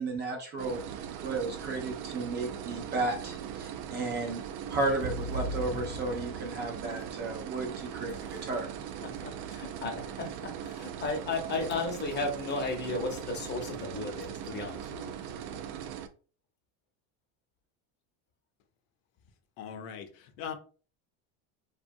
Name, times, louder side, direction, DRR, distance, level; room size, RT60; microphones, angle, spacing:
voice 1, 0.0-4.4 4.7-8.7, right 3 dB, 30° right, 0.3 m, -34 dB
sound 1, 0.6-16.1, right 9 dB, 85° right, 0.5 m, -40 dB
sound 2, 4.7-7.0, equal, 50° right, 0.8 m, -38 dB
voice 2, 8.1-8.4 9.0-15.1 15.5-15.6, left 3 dB, 25° left, 0.7 m, -35 dB
voice 3, 19.6-20.5, left 7 dB, 85° left, 0.7 m, -40 dB
2.6 x 2.3 x 2.6 m
cardioid pair, 140°, 41 cm